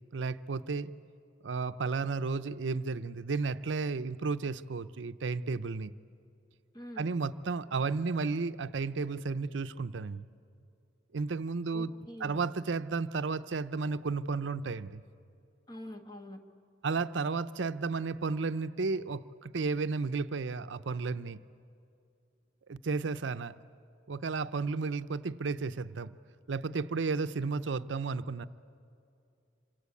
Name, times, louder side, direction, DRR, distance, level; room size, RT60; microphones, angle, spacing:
voice 1, 0.1-0.9 1.4-5.9 7.0-10.3 11.1-11.9 12.2-15.0 16.8-21.4 22.7-23.6 24.1-26.2 26.5-28.5, right 4 dB, 80° right, 13 dB, 0.6 m, -33 dB
voice 2, 6.7-7.2 11.7-12.4 15.7-16.5, left 1 dB, 25° left, 5 dB, 1.6 m, -45 dB
27.5 x 25.5 x 8.4 m, 2.5 s
head